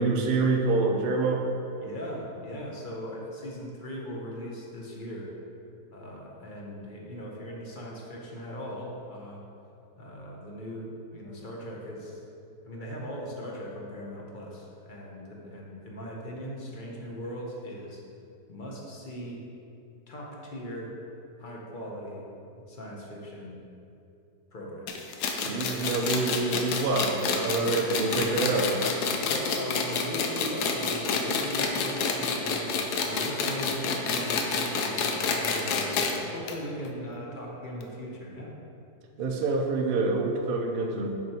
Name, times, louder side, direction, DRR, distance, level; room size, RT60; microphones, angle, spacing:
voice 1, 0.0-1.5 25.4-28.8 39.2-41.2, right 3 dB, 60° right, 2 dB, 0.5 m, -26 dB
voice 2, 1.8-5.3 5.9-9.4 10.0-12.2 12.6-18.0 18.5-19.4 20.1-20.9 21.4-22.2 22.7-23.6 24.5-24.9 29.3-38.5, equal, 35° left, -2 dB, 0.9 m, -39 dB
sound 1, 24.9-36.2 36.5-36.6 36.8-36.9 37.8-37.9, left 5 dB, 70° left, 1.2 m, -28 dB
6.5 x 5.9 x 4.4 m, 2.6 s
omnidirectional pair, 1.9 m